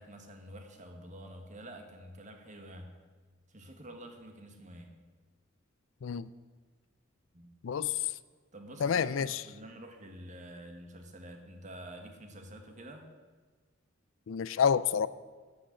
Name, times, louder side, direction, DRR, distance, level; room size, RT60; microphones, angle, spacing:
voice 1, 0.0-2.9 3.5-4.9 7.3-7.6 8.5-13.1, right 1 dB, 40° right, 4 dB, 1.6 m, -48 dB
voice 2, 8.8-9.4 14.3-15.1, left 7 dB, 70° left, 17 dB, 0.4 m, -28 dB
11.5 x 6.4 x 8.7 m, 1.4 s
head